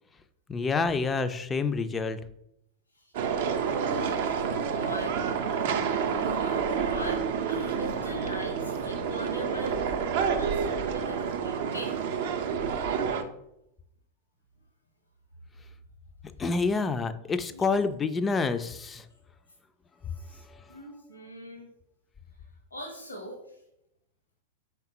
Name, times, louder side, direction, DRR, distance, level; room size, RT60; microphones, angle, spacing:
voice 1, 0.5-2.2 16.4-19.0, left 4 dB, 20° left, 11 dB, 0.3 m, -28 dB
voice 2, 2.9-3.4 3.7-7.2 7.5-12.0 17.5-17.8 20.2-20.4 20.7-21.7 22.7-23.6, equal, 80° left, 2 dB, 0.8 m, -41 dB
sound 1, 3.1-13.2, right 6 dB, 55° right, 0.4 m, -29 dB
4.6 x 3.4 x 2.8 m, 0.79 s
figure-of-eight pair, 90°, 0 cm